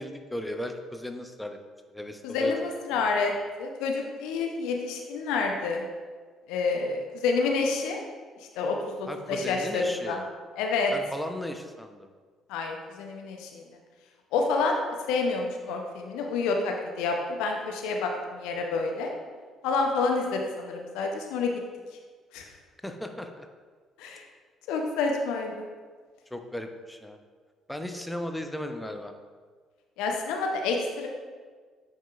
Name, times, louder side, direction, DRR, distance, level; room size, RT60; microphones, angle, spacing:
voice 1, 0.0-1.6 1.9-2.5 2.9-3.1 9.1-10.2 10.9-12.1 22.8-23.5 26.3-27.2 27.7-29.1, left 1 dB, 5° left, 5 dB, 0.6 m, -36 dB
voice 2, 2.2-3.3 3.6-5.9 6.5-8.0 8.4-10.2 10.6-10.9 12.5-13.6 14.3-14.8 15.1-19.1 19.6-21.5 22.3-22.5 24.0-24.2 24.7-25.7 30.0-31.1, left 4 dB, 65° left, 2 dB, 0.6 m, -28 dB
8.9 x 4.5 x 2.4 m, 1.5 s
figure-of-eight pair, 50°, 0 cm